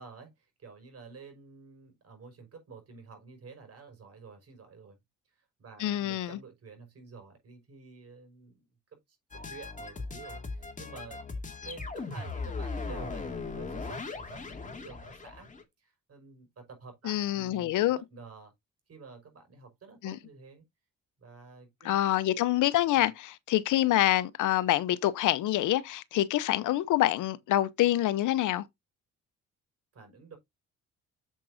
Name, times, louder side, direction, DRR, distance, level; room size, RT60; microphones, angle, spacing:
voice 1, 0.0-5.0 5.3-8.7 9.1-15.5 15.8-18.5 18.9-20.6 21.2-22.1 23.0-23.1 29.9-30.4, right 4 dB, 50° right, 5.6 m, -50 dB
voice 2, 5.8-6.4 17.0-18.0 20.0-20.2 21.8-28.6, left 14 dB, 80° left, 0.9 m, -26 dB
sound 1, 9.3-15.6, left 3 dB, 25° left, 2.4 m, -38 dB
8.5 x 7.5 x 2.7 m
cardioid pair, 90°, 30 cm